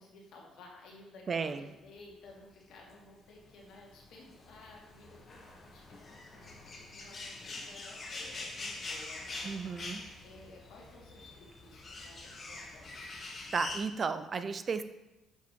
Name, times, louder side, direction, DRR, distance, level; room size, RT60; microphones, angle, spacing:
voice 1, 0.0-12.9, left 2 dB, 60° left, -1 dB, 1.5 m, -55 dB
voice 2, 1.3-1.6 9.4-10.0 13.5-14.8, right 5 dB, 40° right, 10 dB, 0.3 m, -33 dB
sound 1, 2.7-13.8, left 2 dB, 40° left, 1.1 m, -45 dB
6.7 x 4.8 x 3.2 m, 1.0 s
figure-of-eight pair, 45°, 0 cm